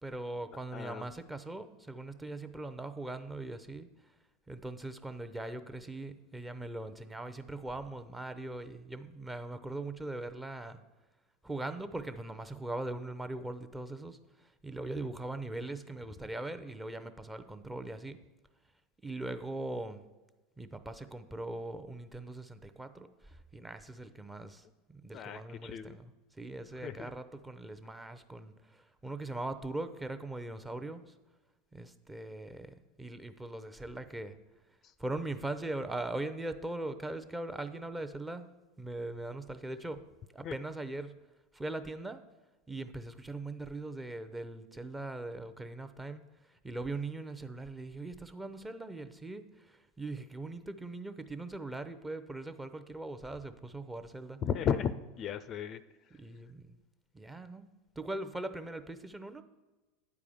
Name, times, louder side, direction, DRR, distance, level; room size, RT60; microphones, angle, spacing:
voice 1, 0.0-3.9 4.5-10.8 11.4-18.2 19.0-20.0 20.6-31.1 31.7-34.4 35.0-38.5 38.8-40.0 40.3-41.1 41.5-42.2 42.7-46.2 46.6-54.4 56.1-56.8 57.1-57.7 58.0-59.4, right 2 dB, 10° right, 10 dB, 0.6 m, -40 dB
voice 2, 0.7-1.1 25.1-26.0 26.8-27.1 34.8-34.9 40.4-40.5 54.4-55.8, left 8 dB, 40° left, 14 dB, 0.4 m, -35 dB
8.7 x 4.8 x 7.0 m, 1.2 s
hypercardioid pair, 85°, 0 cm